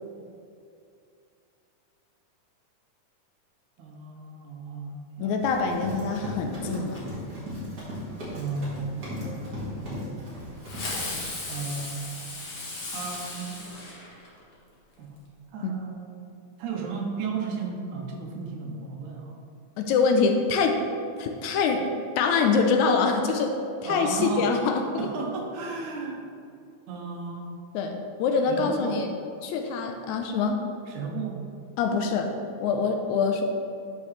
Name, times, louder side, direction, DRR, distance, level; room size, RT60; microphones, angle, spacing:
voice 1, 3.8-5.4 8.3-10.3 11.5-12.1 12.9-13.8 15.0-15.2 15.5-16.3 16.6-19.4 23.8-24.5 25.0-26.3 26.9-27.5 28.5-29.0 30.9-31.4, right 4 dB, 80° right, 1 dB, 2.3 m, -34 dB
voice 2, 5.2-7.1 15.6-15.7 19.8-20.8 21.2-23.6 23.8-24.8 27.7-29.1 29.4-30.6 31.8-32.3 32.6-33.4, left 5 dB, 80° left, 4 dB, 1.9 m, -24 dB
Run, 5.4-11.2, left 1 dB, 35° right, 2.1 m, -37 dB
Fireworks, 10.6-14.5, left 2 dB, 50° left, 1.3 m, -36 dB
11.5 x 4.7 x 3.2 m, 2.5 s
omnidirectional pair, 3.5 m